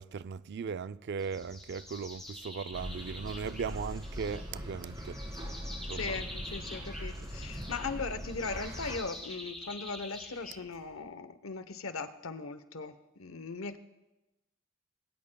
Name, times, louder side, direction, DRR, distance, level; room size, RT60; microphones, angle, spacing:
voice 1, 0.0-5.5 5.9-6.2, right 6 dB, 55° right, 0.4 m, -38 dB
sound 1, 1.2-11.0, left 1 dB, ahead, 6.0 m, -47 dB
sound 2, 2.7-9.0, equal, 20° right, 1.9 m, -41 dB
voice 2, 5.9-13.8, left 4 dB, 80° left, 0.9 m, -39 dB
21.5 x 16.5 x 2.2 m
head